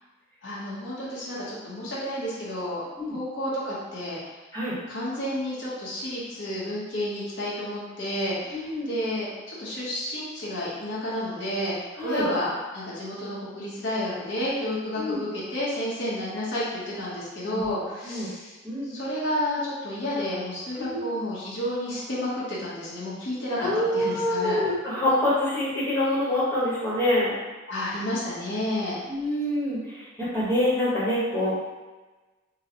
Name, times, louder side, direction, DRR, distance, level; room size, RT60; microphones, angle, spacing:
voice 1, 0.4-4.2 4.9-11.7 12.0-18.5 18.9-24.6 27.7-29.0, left 1 dB, 80° left, -8 dB, 1.0 m, -31 dB
voice 2, 8.5-8.9 12.0-12.3 15.0-15.2 17.5-17.7 18.0-18.3 18.6-18.9 20.8-21.1 23.6-27.4 29.1-31.5, left 1 dB, 10° left, -10 dB, 1.1 m, -26 dB
3.9 x 2.2 x 2.8 m, 1.2 s
head